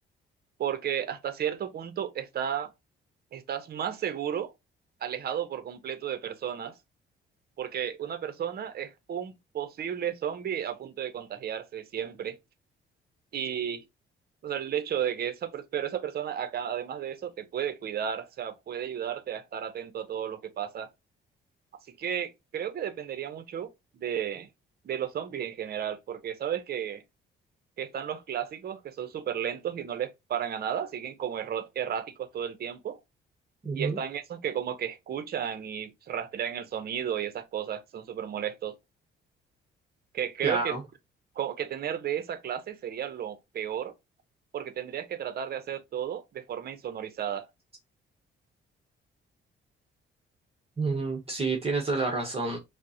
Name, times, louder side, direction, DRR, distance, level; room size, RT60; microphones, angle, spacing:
voice 1, 0.6-2.7 3.3-4.5 5.0-6.7 7.6-12.4 13.3-13.8 14.4-20.9 22.0-24.5 24.8-27.0 27.8-33.0 33.7-38.7 40.1-40.8 41.4-43.9 44.5-47.5, right 9 dB, 50° right, 0.7 m, -33 dB
voice 2, 33.6-34.0 40.4-40.8 50.8-52.6, right 3 dB, 30° right, 0.9 m, -29 dB
5.0 x 2.1 x 2.8 m
cardioid pair, 90°, 20 cm